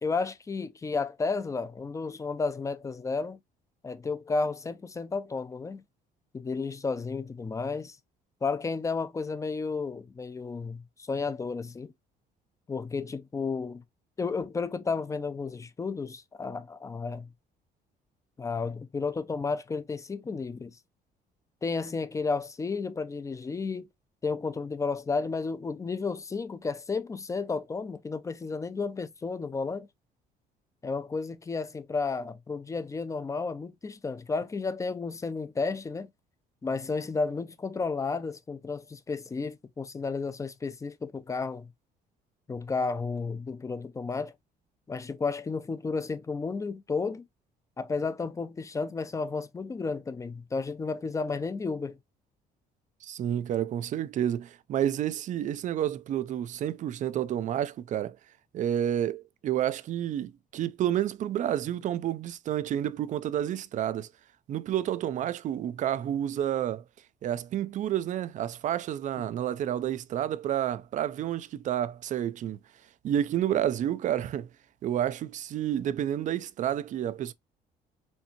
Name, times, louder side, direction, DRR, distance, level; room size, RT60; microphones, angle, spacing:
voice 1, 0.0-3.4 3.8-5.8 6.3-8.0 8.4-11.9 12.7-13.8 14.2-17.3 18.4-20.8 21.6-23.9 24.2-29.9 30.8-36.1 36.6-41.7 42.5-44.3 44.9-47.2 47.8-52.0, left 4 dB, 20° left, 0.5 m, -32 dB
voice 2, 53.0-58.2 58.5-64.1 64.5-66.8 67.2-72.6 73.0-74.5 74.8-77.3, right 11 dB, 50° right, 0.4 m, -30 dB
4.3 x 2.6 x 2.8 m
cardioid pair, 110°, 17 cm